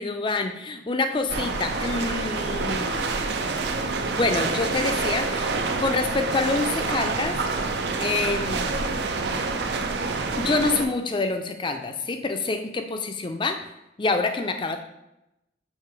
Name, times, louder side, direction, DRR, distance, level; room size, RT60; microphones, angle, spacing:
voice 1, 0.0-3.1 4.1-5.5 5.8-7.4 8.0-8.7 10.4-13.7 14.0-14.8, left 3 dB, 25° left, 7 dB, 0.4 m, -26 dB
sound 1, 1.1-7.4, right 1 dB, 40° right, 1.2 m, -49 dB
on the dam of the Möhne Reservoir, 1.3-10.9, right 3 dB, 65° right, 0.5 m, -27 dB
7.5 x 2.8 x 4.6 m, 0.91 s
head